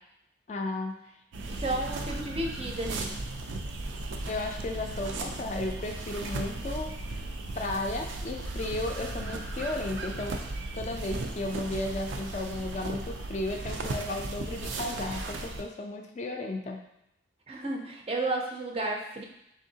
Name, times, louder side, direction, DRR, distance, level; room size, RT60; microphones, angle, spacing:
voice 1, 0.5-1.0 4.3-6.9 7.6-10.4 10.7-16.8, left 2 dB, 40° left, 3 dB, 0.3 m, -34 dB
sound 1, 1.3-15.6, right 2 dB, 90° right, 0.4 m, -36 dB
voice 2, 1.5-3.1 17.5-19.2, right 2 dB, 30° right, 0 dB, 0.5 m, -32 dB
3.6 x 3.5 x 2.7 m, 0.82 s
head